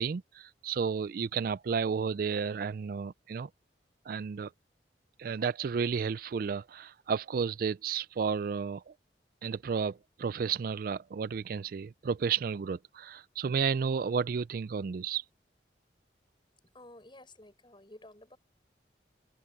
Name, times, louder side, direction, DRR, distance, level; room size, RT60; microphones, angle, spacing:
voice 1, 0.0-3.5 4.1-4.5 5.2-8.9 9.4-15.2, right 6 dB, 55° right, 0.3 m, -32 dB
voice 2, 16.7-18.4, left 1 dB, 25° left, 6.8 m, -52 dB
head